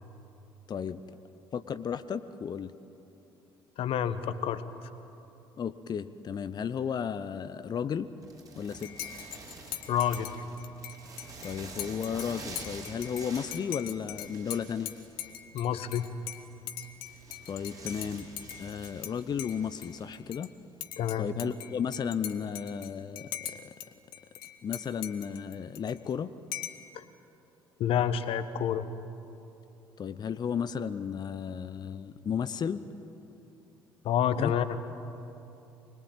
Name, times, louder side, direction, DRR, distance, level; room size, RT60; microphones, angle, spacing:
voice 1, 0.7-1.0 1.5-2.7 5.6-8.1 8.6-9.0 11.4-14.9 17.5-18.3 18.6-20.5 21.2-23.7 24.6-26.3 30.0-32.8 34.4-34.5, left 7 dB, 35° left, 13 dB, 0.8 m, -34 dB
voice 2, 3.8-4.6 9.9-10.3 15.5-16.1 21.0-21.3 26.9-27.0 27.8-28.9 34.0-34.8, left 9 dB, 50° left, 13 dB, 1.3 m, -28 dB
sound 1, 8.2-20.2, right 3 dB, 30° right, 5.6 m, -48 dB
Dishes pots and pans / Cutlery silverware / Chink clink, 8.8-19.1 19.4-20.5 20.8-23.9 24.1-26.1 26.5-26.9, left 12 dB, 70° left, 1.2 m, -41 dB
24.5 x 21.0 x 9.0 m, 2.9 s
figure-of-eight pair, 50°, 12 cm